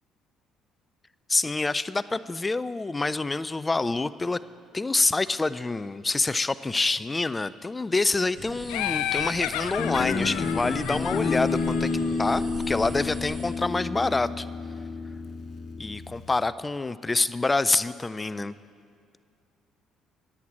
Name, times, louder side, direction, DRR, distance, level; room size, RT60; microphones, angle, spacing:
voice 1, 1.3-4.4 4.7-11.9 12.2-14.5 15.8-18.5, left 3 dB, 20° left, 16 dB, 0.4 m, -26 dB
sound 1, 8.3-13.5, right 1 dB, 35° right, 3.9 m, -41 dB
Laughter, 8.7-12.3, left 11 dB, 85° left, 0.5 m, -32 dB
Guitar, 9.8-16.3, left 4 dB, 50° left, 1.3 m, -30 dB
10.5 x 10.0 x 8.5 m, 2.3 s
supercardioid pair, 85°, 0 cm